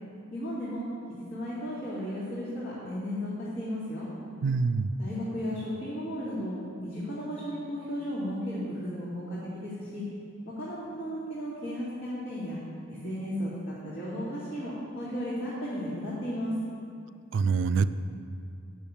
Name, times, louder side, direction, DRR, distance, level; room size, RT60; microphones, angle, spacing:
voice 1, 0.3-0.8 1.1-4.1 5.0-6.5 6.8-10.0 10.4-12.6 12.9-16.5, equal, 55° left, -10 dB, 2.3 m, -34 dB
voice 2, 4.4-4.9 17.3-17.9, right 5 dB, 65° right, 13 dB, 0.3 m, -25 dB
8.6 x 6.4 x 7.1 m, 2.4 s
head